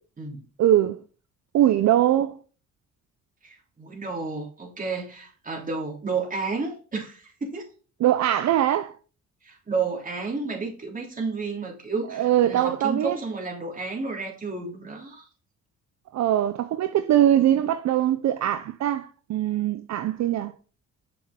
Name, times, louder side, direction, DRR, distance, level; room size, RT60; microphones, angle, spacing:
voice 1, 0.6-1.0 1.5-2.4 8.0-8.9 12.1-13.2 16.1-20.5, right 12 dB, 65° right, 0.6 m, -22 dB
voice 2, 3.4-7.6 9.4-15.3, right 4 dB, 25° right, 3.2 m, -31 dB
6.9 x 6.0 x 3.7 m
cardioid pair, 90°, 30 cm